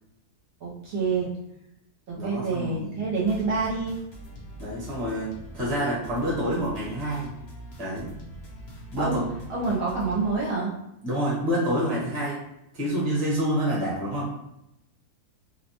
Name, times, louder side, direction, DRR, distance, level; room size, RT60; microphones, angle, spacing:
voice 1, 0.6-1.3 2.1-4.0 9.0-9.2 9.5-10.7, right 4 dB, 70° right, -5 dB, 1.0 m, -27 dB
voice 2, 2.2-2.9 4.5-7.3 7.8-8.1 8.9-9.2 11.0-12.4 12.7-14.3, equal, 30° right, -6 dB, 0.9 m, -27 dB
sound 1, 3.2-10.4, equal, 55° left, 0.8 m, -43 dB
2.7 x 2.1 x 2.7 m, 0.84 s
omnidirectional pair, 1.7 m